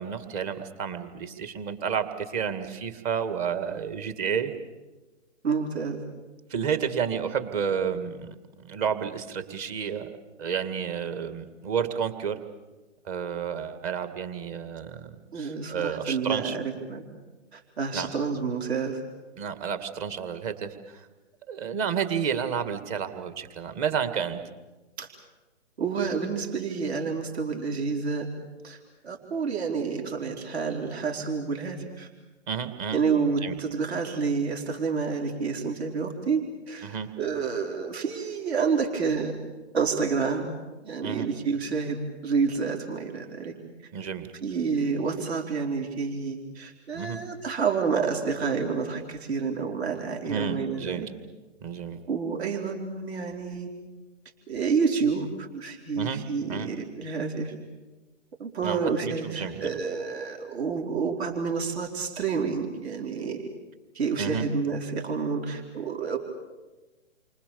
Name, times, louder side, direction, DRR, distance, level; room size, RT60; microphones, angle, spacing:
voice 1, 0.0-4.5 6.5-12.4 13.0-16.6 17.9-18.1 19.4-21.1 21.5-24.4 32.5-33.0 33.4-33.6 36.8-37.1 41.0-41.3 43.9-44.3 46.9-47.2 50.3-51.0 51.6-52.0 56.0-56.2 56.5-56.7 58.6-59.7 64.2-64.4, right 7 dB, 30° right, 9 dB, 2.2 m, -31 dB
voice 2, 5.4-6.0 15.3-17.0 17.5-19.0 25.0-25.1 25.8-28.3 28.6-32.1 32.9-39.3 39.7-40.5 40.8-43.5 44.4-51.1 52.1-53.7 54.5-57.5 58.4-63.4 63.9-66.2, right 5 dB, 55° right, 3 dB, 4.1 m, -29 dB
29.5 x 25.0 x 7.1 m, 1.2 s
figure-of-eight pair, 135°, 37 cm